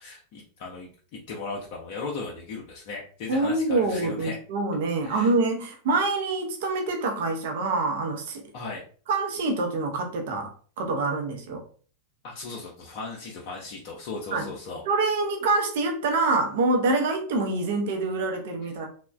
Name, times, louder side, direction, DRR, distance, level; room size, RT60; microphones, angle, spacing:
voice 1, 0.0-4.4 5.0-5.3 8.5-8.8 12.2-14.8, left 3 dB, 45° left, -2 dB, 0.5 m, -37 dB
voice 2, 3.3-8.4 9.1-10.5 10.8-11.6 14.3-14.5 14.9-18.9, right 3 dB, 55° right, 3 dB, 0.5 m, -26 dB
3.0 x 2.1 x 2.3 m, 0.43 s
figure-of-eight pair, 90°, 0 cm